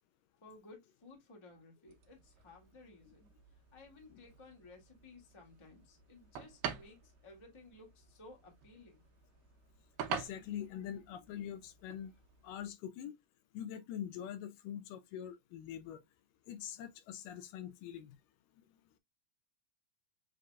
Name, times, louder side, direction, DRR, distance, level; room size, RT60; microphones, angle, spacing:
voice 1, 0.4-9.0, left 2 dB, 20° left, 0.8 m, -57 dB
sound 1, 1.9-12.7, right 7 dB, 80° right, 2.5 m, -47 dB
voice 2, 10.1-12.1 12.4-13.1 13.5-16.0 16.5-18.2, left 10 dB, 80° left, 2.1 m, -44 dB
7.5 x 2.9 x 2.3 m
omnidirectional pair, 4.0 m